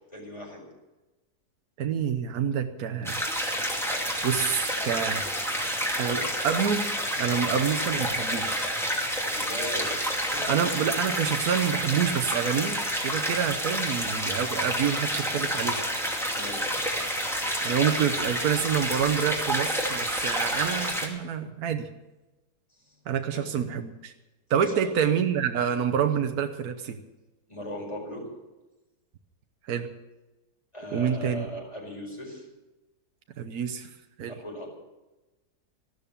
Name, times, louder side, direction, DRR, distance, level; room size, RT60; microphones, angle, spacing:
voice 1, 0.1-0.6 9.3-10.5 16.3-16.7 22.7-23.0 23.3-23.4 24.6-24.9 27.5-28.2 30.7-32.5 34.3-34.7, equal, 20° left, -1 dB, 5.2 m, -38 dB
voice 2, 1.8-3.2 4.2-5.2 6.0-6.8 7.2-8.6 10.5-15.8 17.6-21.9 23.1-24.1 24.5-27.0 29.6-29.9 30.9-31.5 33.4-33.9 34.2-34.4, right 8 dB, 70° right, 6 dB, 1.4 m, -27 dB
sound 1, 3.0-21.1, equal, ahead, 2.5 m, -29 dB
14.5 x 12.5 x 7.1 m, 1.1 s
omnidirectional pair, 1.7 m